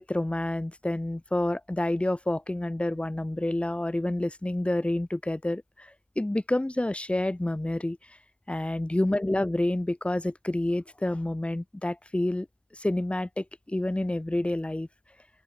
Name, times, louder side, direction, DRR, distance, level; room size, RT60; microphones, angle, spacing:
voice 1, 0.0-8.0 8.5-12.5 12.7-14.9, left 1 dB, 20° left, 1.4 m, -28 dB
open air
wide cardioid pair, 65°, 6 cm